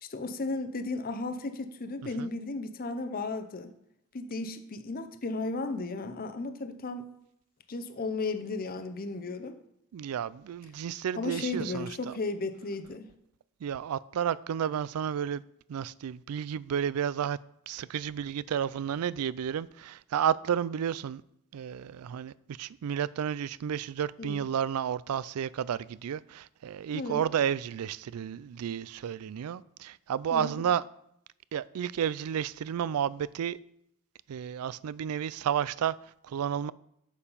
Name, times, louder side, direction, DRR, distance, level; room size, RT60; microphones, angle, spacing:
voice 1, 0.0-3.7 4.1-7.1 7.7-9.6 11.2-13.1 24.2-24.4 26.9-27.3 30.3-30.5, left 3 dB, 40° left, 0.6 m, -34 dB
voice 2, 9.9-12.1 13.6-15.4 15.7-17.4 17.7-21.2 21.5-30.8 31.5-33.6 34.3-35.9 36.2-36.7, right 8 dB, 80° right, 0.3 m, -31 dB
7.0 x 6.9 x 5.5 m
head